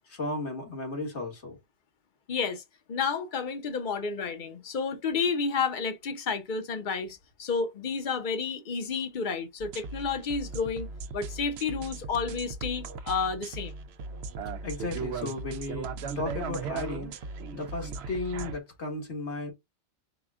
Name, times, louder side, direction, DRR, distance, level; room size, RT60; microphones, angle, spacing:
voice 1, 0.0-1.6 14.6-15.9 16.2-17.1 17.5-19.5, left 2 dB, 75° left, 2.1 m, -34 dB
voice 2, 2.3-2.6 2.9-10.9 11.1-13.7, left 5 dB, 45° left, 1.0 m, -31 dB
sound 1, 9.6-18.6, right 4 dB, 75° right, 0.8 m, -37 dB
4.9 x 2.3 x 3.5 m
omnidirectional pair, 1.2 m